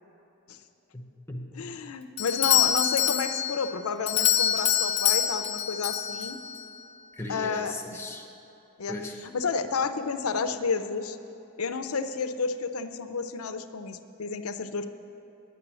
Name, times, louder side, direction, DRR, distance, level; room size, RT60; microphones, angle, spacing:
voice 1, 0.9-1.7 7.2-8.2 8.9-9.2, left 1 dB, 10° left, 1 dB, 0.9 m, -38 dB
voice 2, 1.5-6.4 7.3-7.8 8.8-9.0 9.3-11.2 11.6-14.9, left 5 dB, 85° left, 9 dB, 0.6 m, -31 dB
Doorbell, 2.2-6.6, left 10 dB, 25° left, 0.5 m, -25 dB
10.0 x 9.5 x 6.2 m, 3.0 s
head